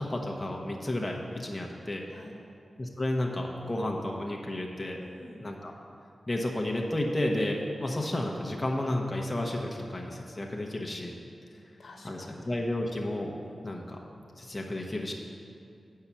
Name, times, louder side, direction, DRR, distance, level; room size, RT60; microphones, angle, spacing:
voice 1, 0.0-2.0 2.8-5.0 5.4-5.7 6.3-11.1 12.0-13.3 13.6-14.0 14.4-15.1, left 1 dB, 25° left, -1 dB, 0.9 m, -32 dB
voice 2, 5.0-5.4 11.5-12.5 13.4-13.6, left 2 dB, 65° left, 1 dB, 1.1 m, -50 dB
8.4 x 5.6 x 6.1 m, 2.5 s
cardioid pair, 55°, 0 cm